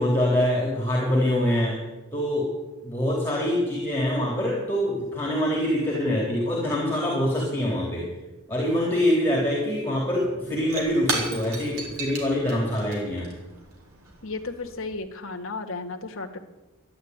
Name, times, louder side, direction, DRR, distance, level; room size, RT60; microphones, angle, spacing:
voice 1, 0.0-1.8 2.1-2.5 2.8-8.1 8.5-13.3, left 1 dB, 10° left, -3 dB, 3.3 m, -24 dB
Shatter / Crushing, 10.3-14.9, right 3 dB, 70° right, 3.9 m, -35 dB
voice 2, 14.2-16.4, left 3 dB, 60° left, 4 dB, 1.7 m, -34 dB
12.5 x 11.0 x 9.4 m, 1.1 s
head